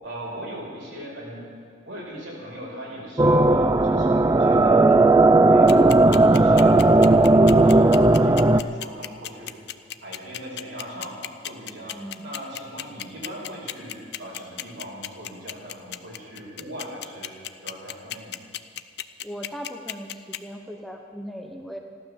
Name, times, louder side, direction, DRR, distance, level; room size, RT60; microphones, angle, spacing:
voice 1, 0.0-1.4 1.8-5.7 6.0-9.5 10.0-11.2 11.4-12.0 12.2-17.3 17.6-18.4, equal, 75° right, -4 dB, 4.9 m, -39 dB
sound 1, 3.2-8.6, right 2 dB, 20° right, 0.3 m, -16 dB
sound 2, 5.7-20.4, left 12 dB, 55° left, 0.5 m, -33 dB
voice 2, 11.9-12.3 19.2-21.8, equal, ahead, 2 dB, 0.8 m, -38 dB
15.5 x 12.0 x 7.1 m, 2.3 s
head